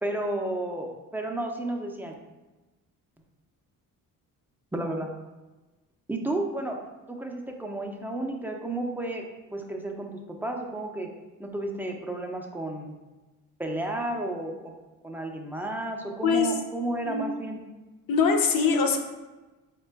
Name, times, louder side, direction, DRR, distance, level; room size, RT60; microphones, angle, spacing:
voice 1, 0.0-2.1 4.7-5.1 6.1-6.8 7.1-11.1 11.4-13.0 13.6-14.7 15.0-17.6, right 2 dB, 5° right, 2 dB, 0.4 m, -32 dB
voice 2, 18.1-19.0, left 5 dB, 65° left, 4 dB, 0.6 m, -22 dB
4.1 x 2.2 x 4.5 m, 1.1 s
cardioid pair, 115°, 36 cm